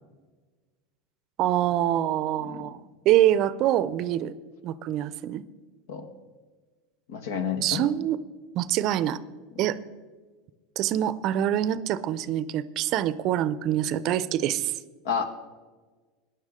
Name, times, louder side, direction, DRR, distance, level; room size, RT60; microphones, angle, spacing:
voice 1, 1.4-2.8 3.1-4.3 4.6-5.4 7.6-8.2 8.5-9.2 9.6-9.8 10.8-14.7, right 12 dB, 50° right, 17 dB, 0.6 m, -25 dB
voice 2, 7.1-7.9 9.5-9.6 15.0-15.2, left 7 dB, 70° left, 9 dB, 1.3 m, -30 dB
15.5 x 10.5 x 3.7 m, 1.4 s
hypercardioid pair, 90°, 0 cm